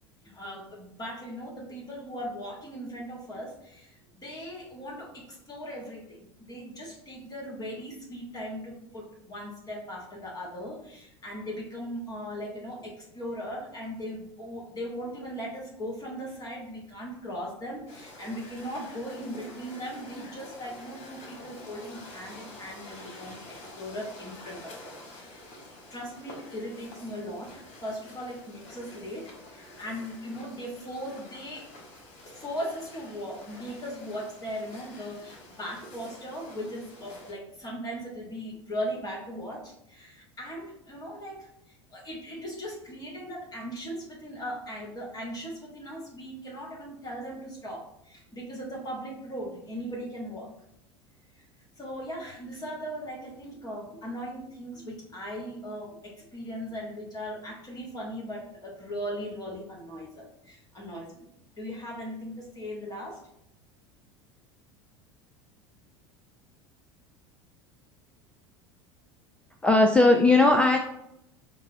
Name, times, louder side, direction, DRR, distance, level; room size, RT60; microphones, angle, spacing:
voice 1, 0.2-25.4 25.9-31.7 32.2-50.5 51.3-51.4 51.8-61.3 61.6-63.2, equal, 25° left, -2 dB, 1.2 m, -38 dB
sound 1, 17.9-37.3, left 1 dB, 45° left, 1.2 m, -48 dB
voice 2, 69.6-70.8, left 2 dB, 5° left, 3 dB, 0.3 m, -18 dB
5.8 x 2.0 x 2.6 m, 0.78 s
figure-of-eight pair, 75°, 16 cm